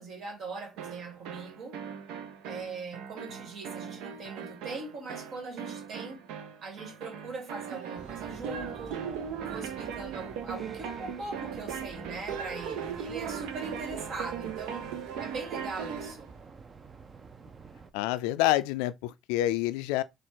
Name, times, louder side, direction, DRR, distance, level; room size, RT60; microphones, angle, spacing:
voice 1, 0.0-1.8 2.4-6.3 6.6-9.1 9.5-14.9 15.2-16.3, right 3 dB, 60° right, 1.8 m, -41 dB
sound 1, 0.8-16.2, right 7 dB, 80° right, 0.6 m, -39 dB
sound 2, 8.0-17.9, right 4 dB, 40° right, 0.7 m, -48 dB
voice 2, 17.9-20.0, left 15 dB, 85° left, 0.3 m, -27 dB
4.3 x 2.4 x 4.4 m
supercardioid pair, 70°, 0 cm